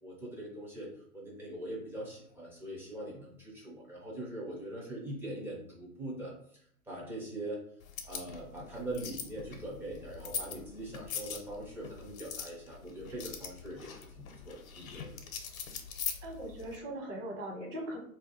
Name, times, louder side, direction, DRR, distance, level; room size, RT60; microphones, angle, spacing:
voice 1, 0.0-0.9 1.1-7.6 8.1-15.2, right 1 dB, 5° right, -4 dB, 0.4 m, -42 dB
sound 1, 7.8-16.8, left 7 dB, 75° left, 0.7 m, -42 dB
voice 2, 16.2-18.0, right 1 dB, 55° right, 1 dB, 1.3 m, -40 dB
2.6 x 2.3 x 4.0 m, 0.65 s
hypercardioid pair, 115°, 42 cm